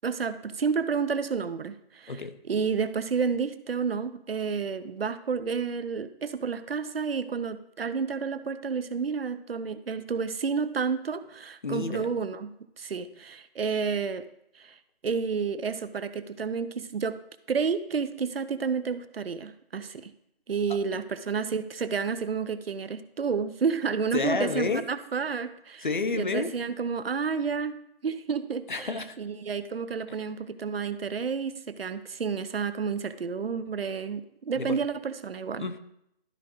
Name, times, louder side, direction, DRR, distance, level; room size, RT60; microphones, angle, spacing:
voice 1, 0.0-2.2 2.5-14.2 14.6-14.8 15.0-17.2 17.5-20.1 20.5-25.9 26.2-27.7 28.0-28.9 29.2-35.6, right 5 dB, 75° right, 13 dB, 0.7 m, -30 dB
voice 2, 11.6-12.1 24.1-24.9 25.8-26.5 28.7-29.2 30.1-30.2 34.5-34.8 35.6-35.8, left 4 dB, 55° left, 10 dB, 0.6 m, -30 dB
12.5 x 5.0 x 3.0 m, 0.78 s
figure-of-eight pair, 175°, 30 cm